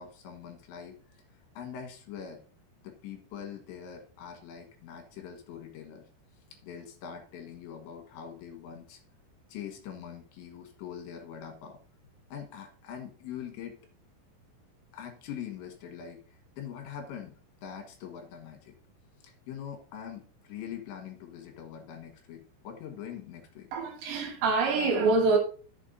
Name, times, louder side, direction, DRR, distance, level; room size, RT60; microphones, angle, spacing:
voice 1, 0.0-2.4 2.8-6.0 6.6-9.0 9.5-11.8 12.3-13.8 14.9-17.4 17.6-18.7 19.2-23.7, left 8 dB, 70° left, 3.4 m, -43 dB
voice 2, 23.7-25.4, right 3 dB, 70° right, 3.5 m, -25 dB
13.0 x 7.1 x 2.6 m
omnidirectional pair, 5.7 m